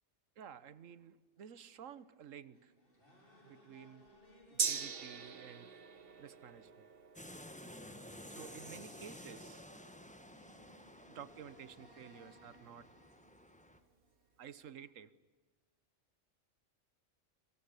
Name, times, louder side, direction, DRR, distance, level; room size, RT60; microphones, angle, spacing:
voice 1, 0.4-2.7 3.4-4.1 4.5-5.7 6.2-6.9 8.3-9.6 11.1-12.9 14.4-15.1, right 8 dB, 85° right, 16 dB, 1.4 m, -52 dB
sound 1, 2.5-14.4, equal, 45° left, 4.7 m, -63 dB
Gong, 4.6-12.4 12.7-12.8, right 6 dB, 50° right, 1.2 m, -44 dB
sound 2, 7.1-13.8, left 1 dB, 5° left, 1.3 m, -53 dB
26.5 x 23.5 x 8.3 m, 1.3 s
omnidirectional pair, 1.3 m